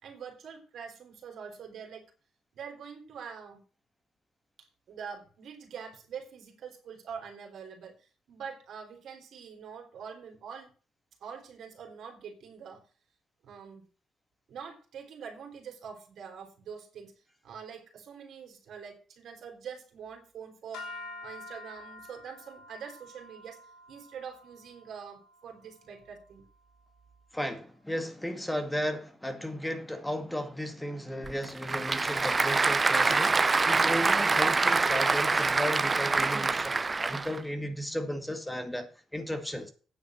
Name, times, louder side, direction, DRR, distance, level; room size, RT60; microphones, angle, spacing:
voice 1, 0.0-2.0 2.5-3.6 4.6-10.7 11.2-12.8 13.4-13.8 14.5-17.1 17.4-20.9 21.2-23.6 23.9-26.5, right 7 dB, 70° right, 3.6 m, -44 dB
sound 1, 20.7-27.1, left 2 dB, 80° left, 2.9 m, -48 dB
voice 2, 27.3-39.7, equal, 10° left, 2.1 m, -35 dB
Applause / Crowd, 31.2-37.4, right 3 dB, 30° right, 0.7 m, -25 dB
9.4 x 7.3 x 6.3 m
supercardioid pair, 55°, 0 cm